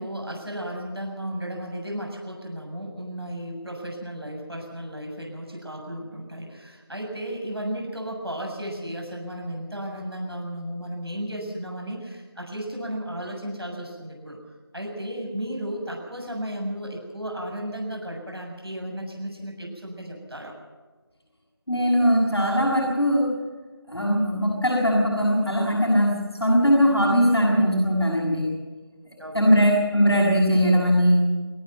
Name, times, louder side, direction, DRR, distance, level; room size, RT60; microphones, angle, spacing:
voice 1, 0.0-14.4 14.7-20.5 29.2-29.7, equal, 70° right, 0 dB, 7.2 m, -34 dB
voice 2, 21.7-23.4 23.9-28.5 29.3-31.4, equal, 85° left, -4 dB, 6.9 m, -20 dB
27.5 x 10.0 x 9.5 m, 1.3 s
figure-of-eight pair, 175°, 13 cm